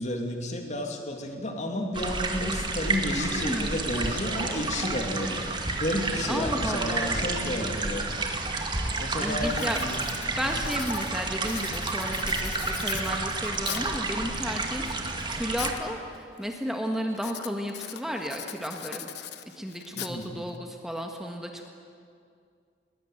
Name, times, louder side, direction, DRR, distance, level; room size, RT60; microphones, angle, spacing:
voice 1, 0.0-5.4 5.8-8.1 9.0-10.1 10.4-10.5 19.9-20.3, left 1 dB, 40° left, 3 dB, 2.9 m, -31 dB
sound 1, 1.9-15.7, right 3 dB, 25° right, 2.1 m, -30 dB
voice 2, 3.1-3.8 6.3-7.2 7.5-8.0 9.2-9.8 10.3-19.1 19.5-21.7, equal, 5° right, 2 dB, 1.6 m, -33 dB
Writing, 8.3-8.4 8.9-9.1 9.5-14.0 14.6-15.8 16.1-16.6 17.1-20.6, left 10 dB, 75° left, 1.2 m, -40 dB
21.0 x 21.0 x 9.2 m, 2.3 s
head